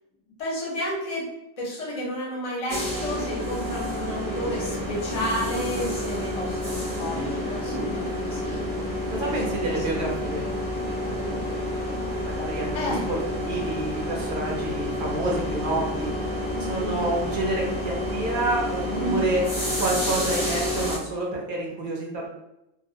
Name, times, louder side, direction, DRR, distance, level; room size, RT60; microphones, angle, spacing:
voice 1, 0.4-1.3 1.6-8.6 9.2-10.1 12.7-13.1 16.5-17.1 18.9-19.3, equal, 35° left, -4 dB, 0.6 m, -32 dB
sound 1, 2.7-21.0, left 1 dB, 15° right, 0.7 m, -29 dB
voice 2, 9.1-10.4 12.2-16.1 16.7-19.4 19.8-22.3, right 2 dB, 55° right, -3 dB, 0.6 m, -29 dB
2.2 x 2.1 x 2.7 m, 0.88 s
omnidirectional pair, 1.3 m